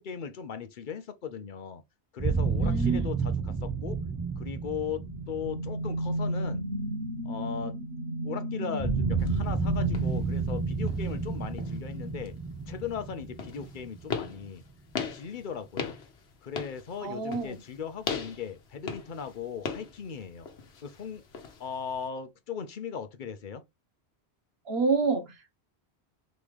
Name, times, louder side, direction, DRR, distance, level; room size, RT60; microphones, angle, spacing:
voice 1, 0.0-1.8 2.1-4.0 4.4-6.6 7.2-7.8 8.2-12.3 12.7-14.6 15.0-16.0 16.4-20.5 20.8-21.2 21.6-23.6, left 7 dB, 55° left, 0.8 m, -38 dB
sound 1, 2.2-7.2 8.8-14.5, right 5 dB, 25° right, 0.3 m, -31 dB
voice 2, 2.6-3.1 17.0-17.6 24.6-25.6, right 4 dB, 70° right, 1.2 m, -28 dB
sound 2, 4.9-11.2, right 1 dB, 85° right, 1.5 m, -34 dB
sound 3, 9.2-22.1, left 5 dB, 70° left, 1.2 m, -40 dB
4.0 x 3.3 x 3.4 m
omnidirectional pair, 1.1 m